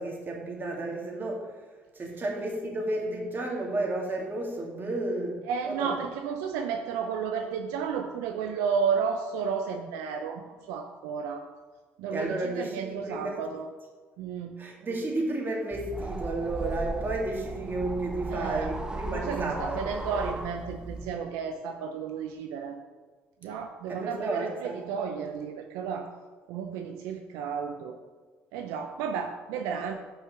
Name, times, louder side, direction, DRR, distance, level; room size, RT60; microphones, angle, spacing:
voice 1, 0.0-1.5 1.9-6.0 12.1-13.4 14.6-20.3 23.9-24.8 29.6-29.7, right 2 dB, 40° right, -1 dB, 2.4 m, -32 dB
voice 2, 5.5-10.4 10.7-11.4 12.0-13.7 14.2-14.5 18.3-18.7 19.1-22.8 23.4-26.1 26.5-28.0 28.5-29.9, right 6 dB, 85° right, 5 dB, 0.6 m, -32 dB
sound 1, 15.7-21.1, right 2 dB, 15° right, 1.0 m, -36 dB
6.3 x 5.5 x 5.9 m, 1.4 s
supercardioid pair, 70°, 5 cm